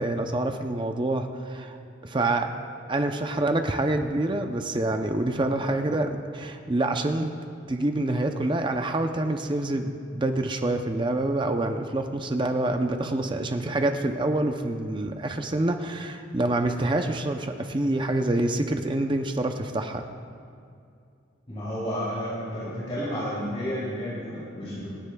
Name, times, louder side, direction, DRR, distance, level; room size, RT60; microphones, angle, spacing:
voice 1, 0.0-1.8 2.0-2.5 2.9-7.3 7.7-20.0, right 2 dB, 25° right, 6 dB, 0.5 m, -26 dB
voice 2, 21.5-24.9, equal, 30° left, -8 dB, 2.9 m, -31 dB
26.5 x 9.9 x 2.3 m, 2.4 s
head